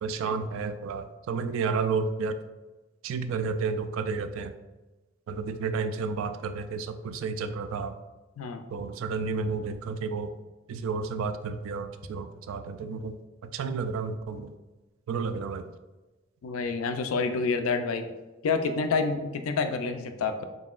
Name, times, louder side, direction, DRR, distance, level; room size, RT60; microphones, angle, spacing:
voice 1, 0.0-2.4 3.0-4.5 5.3-8.0 8.7-10.4 10.7-13.2 13.4-14.5 15.1-15.7, right 4 dB, 70° right, 9 dB, 0.3 m, -31 dB
voice 2, 16.4-18.0 18.4-20.4, left 4 dB, 85° left, 8 dB, 0.4 m, -28 dB
3.9 x 3.7 x 2.4 m, 1.1 s
head